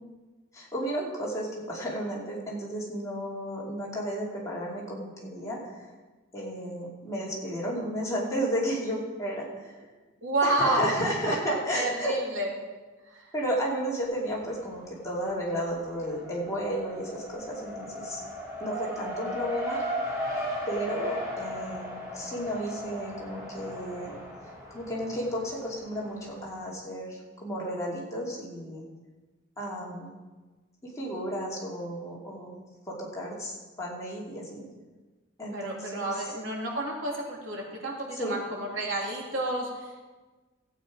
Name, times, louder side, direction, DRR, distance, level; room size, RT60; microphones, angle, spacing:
voice 1, 0.5-5.8 6.3-9.7 10.4-12.2 13.3-18.2 18.6-19.8 20.7-24.2 24.7-28.8 29.6-30.1 31.0-32.6 32.9-34.6 35.4-36.3 38.1-38.4, equal, 15° left, -5 dB, 2.7 m, -33 dB
voice 2, 10.2-12.5 13.1-13.2 35.5-39.7, right 1 dB, 70° right, -1 dB, 2.8 m, -30 dB
Race car auto racing, 14.0-14.8 15.1-26.4, equal, 15° right, 2.4 m, -37 dB
14.0 x 8.9 x 5.0 m, 1.3 s
head